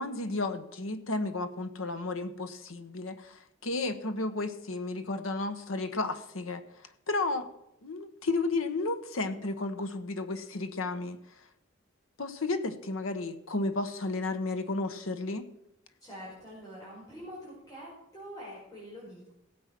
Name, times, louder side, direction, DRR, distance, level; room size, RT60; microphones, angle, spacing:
voice 1, 0.0-6.6 7.1-7.5 7.8-11.2 12.2-15.5, left 2 dB, 85° left, 9 dB, 1.2 m, -33 dB
voice 2, 16.0-19.3, equal, 20° left, -8 dB, 4.9 m, -45 dB
16.5 x 7.9 x 6.0 m, 0.83 s
head